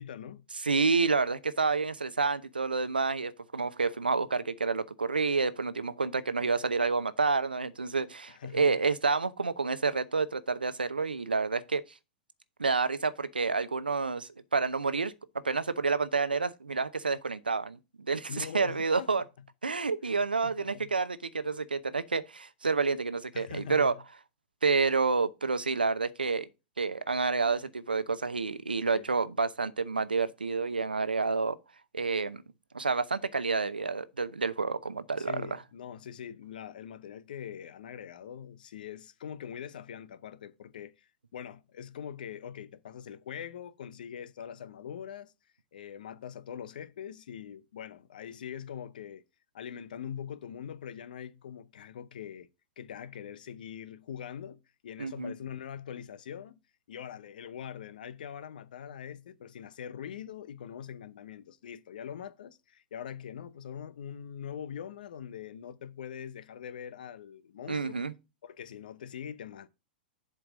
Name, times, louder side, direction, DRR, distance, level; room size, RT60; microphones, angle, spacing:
voice 1, 0.0-0.4 8.3-8.8 18.3-19.2 20.4-20.9 23.3-23.9 28.8-29.1 35.2-45.3 45.7-49.2 49.5-52.5 52.8-56.6 56.9-68.0 68.4-69.7, left 8 dB, 65° left, 0.7 m, -43 dB
voice 2, 0.6-11.8 12.6-15.1 15.4-19.2 19.6-23.9 24.6-26.5 26.8-31.6 31.9-32.4 32.7-35.6 55.0-55.3 67.7-68.1, right 4 dB, 90° right, 0.7 m, -29 dB
7.5 x 4.5 x 6.1 m
figure-of-eight pair, 105°, 5 cm